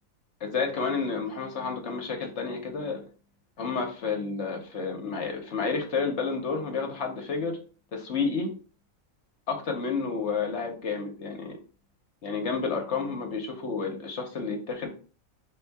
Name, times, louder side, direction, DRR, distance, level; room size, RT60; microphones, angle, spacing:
voice 1, 0.4-3.0 3.6-7.6 7.9-8.5 9.5-11.6 12.2-14.9, left 4 dB, 60° left, 3 dB, 1.0 m, -30 dB
3.3 x 2.7 x 4.5 m, 0.38 s
omnidirectional pair, 1.4 m